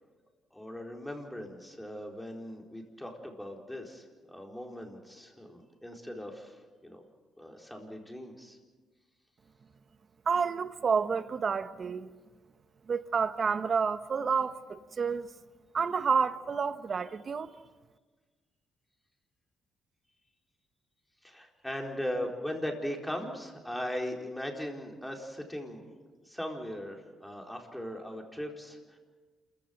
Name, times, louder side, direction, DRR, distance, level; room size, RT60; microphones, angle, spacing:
voice 1, 0.5-7.0 7.4-8.6 21.2-25.8 26.2-29.0, equal, 5° left, 4.2 m, -39 dB
voice 2, 10.3-12.1 12.9-15.3 15.7-17.5, right 5 dB, 45° right, 1.1 m, -29 dB
28.0 x 15.0 x 9.3 m
cardioid pair, 90°, 0 cm